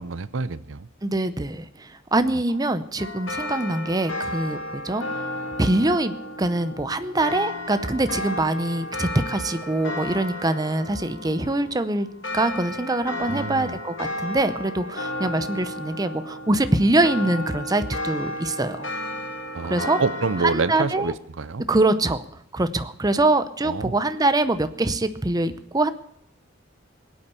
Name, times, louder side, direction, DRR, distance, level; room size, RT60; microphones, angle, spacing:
voice 1, 0.0-0.9 13.3-13.8 19.5-21.7 23.6-24.0, right 4 dB, 75° right, 16 dB, 0.7 m, -27 dB
voice 2, 1.0-5.3 5.6-12.1 12.3-18.9 19.7-20.0 20.4-21.1 21.7-22.2 22.5-25.9, right 2 dB, 20° right, 11 dB, 0.7 m, -24 dB
sound 1, 3.0-21.0, left 1 dB, 70° left, 2.4 m, -33 dB
21.0 x 8.7 x 6.8 m, 0.74 s
head